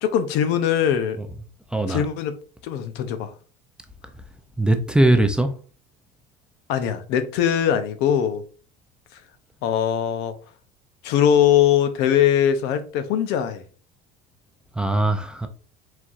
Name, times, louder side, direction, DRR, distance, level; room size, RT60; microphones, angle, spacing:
voice 1, 0.0-1.2 1.9-2.3 2.6-3.3 6.7-8.4 9.1-9.2 9.6-10.3 11.0-13.6, left 9 dB, 75° left, 0.7 m, -21 dB
voice 2, 1.7-2.1 4.6-5.6 14.7-15.5, right 1 dB, 5° right, 0.4 m, -20 dB
4.4 x 4.0 x 2.4 m
cardioid pair, 140°, 18 cm